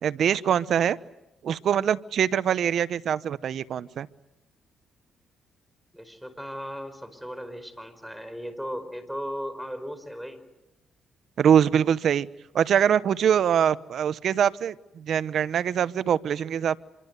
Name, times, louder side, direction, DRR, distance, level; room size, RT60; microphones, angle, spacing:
voice 1, 0.0-1.0 1.4-4.1 11.4-12.3 12.5-16.8, right 8 dB, 65° right, 16 dB, 0.9 m, -23 dB
voice 2, 5.9-10.4, equal, ahead, 11 dB, 4.7 m, -36 dB
27.0 x 24.5 x 8.2 m, 0.91 s
cardioid pair, 90°, 0 cm